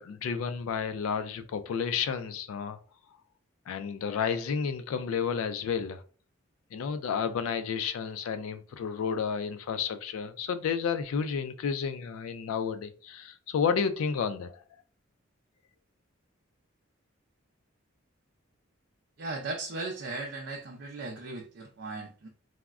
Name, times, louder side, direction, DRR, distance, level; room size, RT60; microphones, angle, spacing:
voice 1, 0.0-2.8 3.7-6.0 6.7-14.6, left 6 dB, 85° left, 10 dB, 0.3 m, -31 dB
voice 2, 19.2-22.3, right 3 dB, 60° right, 1 dB, 0.4 m, -37 dB
3.5 x 2.1 x 2.3 m, 0.40 s
head